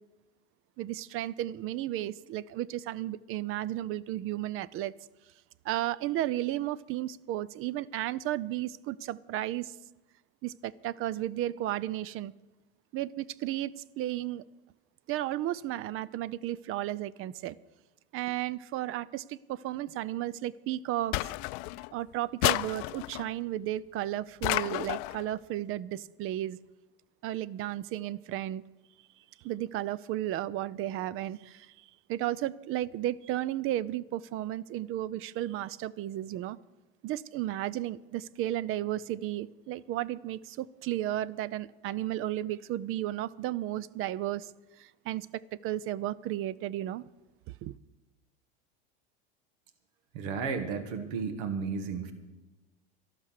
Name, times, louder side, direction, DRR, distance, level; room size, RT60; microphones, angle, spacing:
voice 1, 0.8-4.9 5.6-9.7 10.4-12.3 12.9-14.4 15.1-17.6 18.1-21.2 21.9-26.6 27.2-28.6 29.4-31.7 32.1-36.6 37.0-44.5 44.8-47.0 47.6-47.7, right 13 dB, 45° right, 0.5 m, -33 dB
sound 1, 21.1-21.9 22.4-23.3 24.4-25.2, left 21 dB, 70° left, 0.5 m, -31 dB
voice 2, 50.1-52.1, right 5 dB, 75° right, 1.9 m, -33 dB
12.5 x 12.5 x 6.5 m
supercardioid pair, 115°, 31 cm